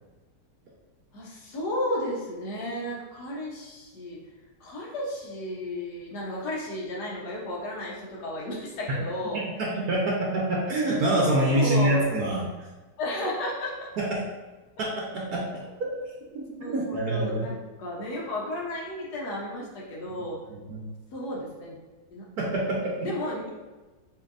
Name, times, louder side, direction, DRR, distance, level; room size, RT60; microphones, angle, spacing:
voice 1, 1.1-4.2 4.6-9.4 11.5-12.2 13.0-13.9 16.6-20.4 21.1-21.8 22.1-22.2 22.6-23.5, left 1 dB, 65° left, -3 dB, 1.5 m, -33 dB
voice 2, 9.3-12.5 14.0-14.2 14.8-16.0 16.3-17.5 20.5-20.9 22.4-22.9, right 1 dB, 65° right, -3 dB, 1.2 m, -26 dB
7.0 x 2.8 x 2.6 m, 1.2 s
omnidirectional pair, 1.9 m